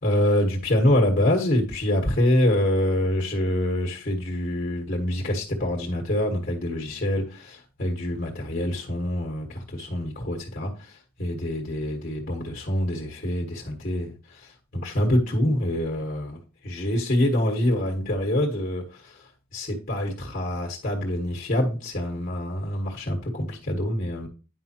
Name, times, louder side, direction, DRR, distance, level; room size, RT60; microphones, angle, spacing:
voice 1, 0.0-19.2 19.5-24.3, left 1 dB, 40° left, 1.5 m, -25 dB
9.6 x 5.4 x 2.9 m
head